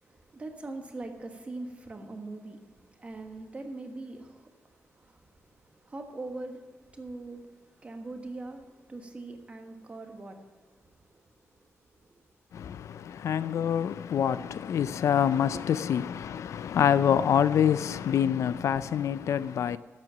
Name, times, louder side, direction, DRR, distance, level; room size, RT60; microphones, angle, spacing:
voice 1, 0.0-11.3 12.1-12.2 15.9-16.0 17.8-18.0, right 2 dB, 25° right, 1.3 m, -42 dB
voice 2, 13.2-19.8, left 9 dB, 75° left, 0.4 m, -26 dB
11.0 x 7.6 x 7.2 m
wide cardioid pair, 170°, 5 cm